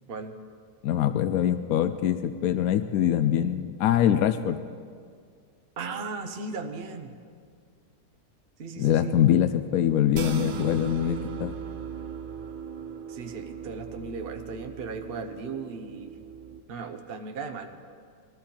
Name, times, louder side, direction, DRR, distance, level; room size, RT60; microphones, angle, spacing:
voice 1, 0.8-4.6 8.8-11.6, left 10 dB, 70° left, 9 dB, 0.8 m, -24 dB
voice 2, 5.8-7.1 8.6-9.2 13.1-16.2 16.7-17.7, right 4 dB, 45° right, 5 dB, 0.8 m, -37 dB
sound 1, 10.1-16.6, right 7 dB, 70° right, 1.3 m, -38 dB
20.0 x 13.5 x 4.4 m, 2.1 s
omnidirectional pair, 1.9 m